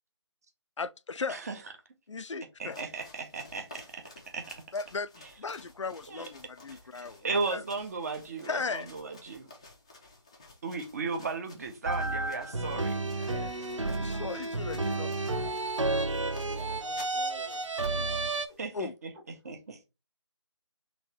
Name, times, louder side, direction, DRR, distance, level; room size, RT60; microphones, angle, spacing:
voice 1, 0.8-1.4 2.1-2.8 4.7-7.3 7.5-7.6 8.5-8.9 13.2-15.1 18.7-18.9, left 4 dB, 75° left, 0.4 m, -37 dB
sound 1, 2.6-18.6, left 2 dB, 10° left, 0.4 m, -54 dB
voice 2, 2.6-4.6 6.1-6.2 7.2-9.5 10.6-13.0 13.8-13.9 18.6-19.1 19.4-19.8, right 4 dB, 30° right, 0.7 m, -35 dB
sound 2, 11.9-18.5, right 2 dB, 85° right, 0.6 m, -31 dB
voice 3, 13.8-17.6 17.9-18.2 19.4-19.5, equal, 10° right, 0.9 m, -50 dB
3.1 x 2.9 x 4.3 m
figure-of-eight pair, 155°, 15 cm